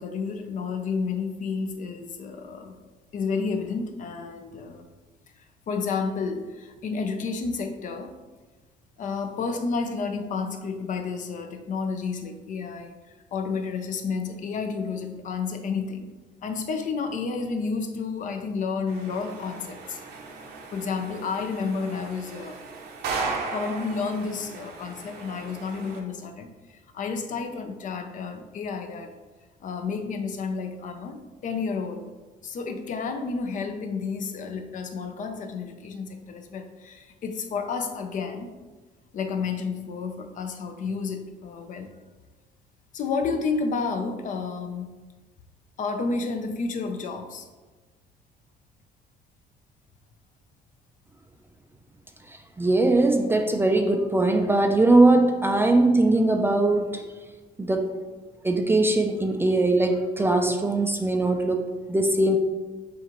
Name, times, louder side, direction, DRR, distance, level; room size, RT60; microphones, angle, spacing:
voice 1, 0.0-2.7 3.1-4.8 5.4-8.1 9.0-16.0 16.4-20.0 20.7-22.6 23.5-29.1 29.6-32.1 32.4-38.5 39.1-41.9 42.9-44.9 45.8-47.5, left 4 dB, 50° left, 6 dB, 0.5 m, -31 dB
sound 1, 18.9-26.0, right 4 dB, 75° right, 0.8 m, -36 dB
voice 2, 52.6-57.0 57.6-58.0 58.4-62.4, right 2 dB, 15° right, 4 dB, 0.4 m, -21 dB
7.0 x 2.5 x 3.0 m, 1.3 s
cardioid pair, 110°, 17 cm